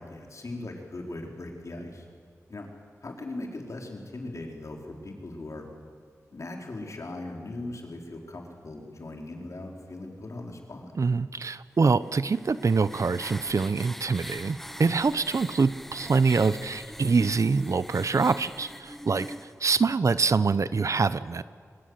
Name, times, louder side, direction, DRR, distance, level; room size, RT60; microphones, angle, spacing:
voice 1, 0.0-2.1 2.5-2.7 3.0-5.7 6.3-10.9, left 2 dB, 60° left, 1 dB, 4.5 m, -39 dB
voice 2, 11.0-19.3 19.6-21.4, right 4 dB, 65° right, 15 dB, 0.8 m, -25 dB
sound 1, 12.0-19.6, equal, 5° left, 1.1 m, -43 dB
23.0 x 22.0 x 8.2 m, 2.1 s
cardioid pair, 55°, 6 cm